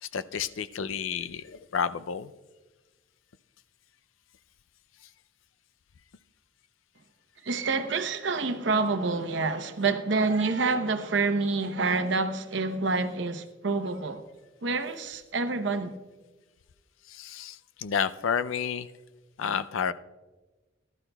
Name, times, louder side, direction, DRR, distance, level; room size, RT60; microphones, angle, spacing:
voice 1, 0.0-2.3 17.1-18.9 19.4-19.9, left 7 dB, 90° left, 0.4 m, -30 dB
voice 2, 7.4-14.2 14.6-16.0, right 3 dB, 65° right, 0.8 m, -27 dB
19.0 x 12.0 x 2.3 m
head